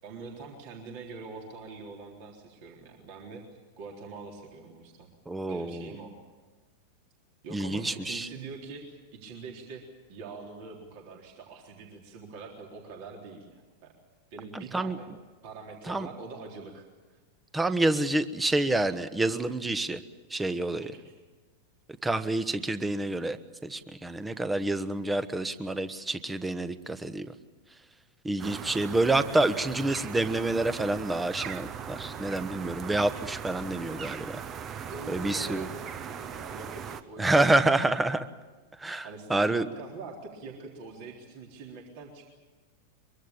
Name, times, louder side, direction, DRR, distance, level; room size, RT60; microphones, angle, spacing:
voice 1, 0.0-3.4 3.8-5.1 5.5-6.1 7.4-13.9 14.3-15.1 15.4-17.2 20.8-21.1 22.5-22.8 34.8-37.5 39.0-42.3, right 4 dB, 45° right, 1 dB, 3.8 m, -44 dB
voice 2, 5.3-5.9 7.5-8.3 14.5-15.0 15.9-16.1 17.5-20.0 20.3-20.9 22.0-23.4 23.6-27.3 28.2-34.4 35.1-35.7 37.2-38.3 38.8-39.6, right 2 dB, 10° right, 12 dB, 1.3 m, -28 dB
sound 1, 28.4-37.0, right 7 dB, 30° right, 1.2 m, -39 dB
24.0 x 23.5 x 7.2 m, 1.3 s
figure-of-eight pair, 90°, 0 cm